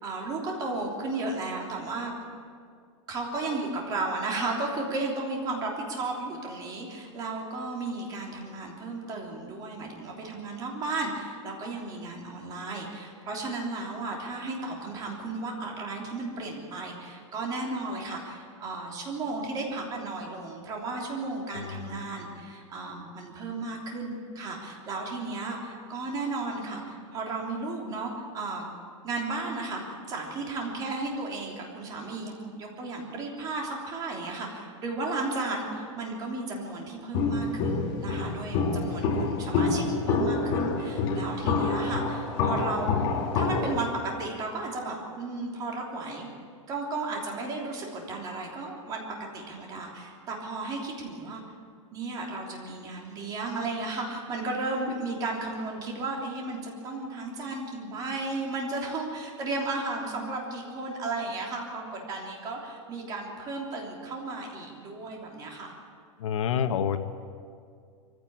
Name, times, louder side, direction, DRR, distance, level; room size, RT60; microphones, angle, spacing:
voice 1, 0.0-2.1 3.1-28.7 29.0-43.0 43.3-46.3 46.7-49.0 49.3-51.4 51.9-65.7, right 3 dB, 20° right, 0 dB, 3.2 m, -34 dB
Walk footsteps, 37.1-43.8, left 4 dB, 35° left, 2.6 m, -27 dB
voice 2, 66.2-67.0, left 8 dB, 75° left, 8 dB, 1.4 m, -27 dB
23.0 x 16.0 x 8.8 m, 2.2 s
supercardioid pair, 175°, 17 cm